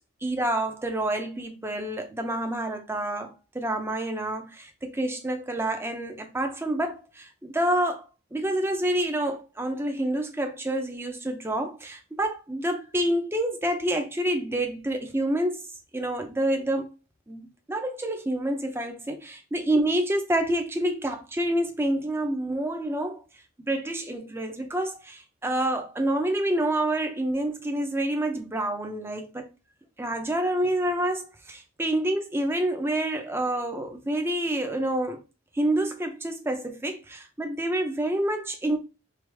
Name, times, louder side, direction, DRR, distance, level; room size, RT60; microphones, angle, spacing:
voice 1, 0.2-8.0 8.3-15.7 15.9-16.9 17.3-23.2 23.6-29.5 30.0-35.2 35.5-38.8, right 1 dB, 10° right, 0.7 m, -28 dB
4.8 x 2.6 x 3.4 m
head